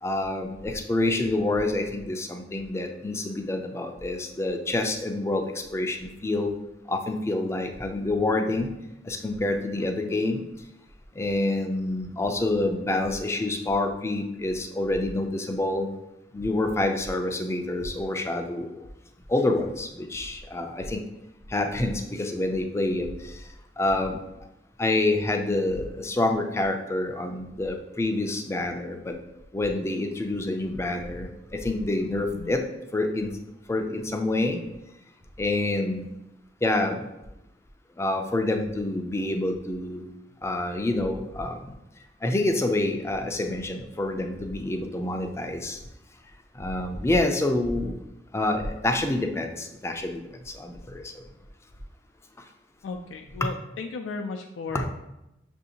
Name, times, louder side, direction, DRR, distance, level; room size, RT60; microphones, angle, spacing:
voice 1, 0.0-6.5 6.9-8.7 9.0-10.4 11.2-15.9 16.3-18.7 19.3-21.0 21.5-23.4 23.8-24.2 24.8-29.1 29.5-32.6 32.9-33.3 33.7-34.6 35.4-36.1 36.6-37.0 38.0-40.0 40.4-41.7 42.2-45.8 46.6-47.9 48.3-51.0 54.7-54.9, left 2 dB, 15° left, 4 dB, 0.3 m, -27 dB
voice 2, 52.8-54.9, left 4 dB, 90° left, 3 dB, 0.3 m, -35 dB
6.3 x 2.6 x 2.8 m, 0.89 s
head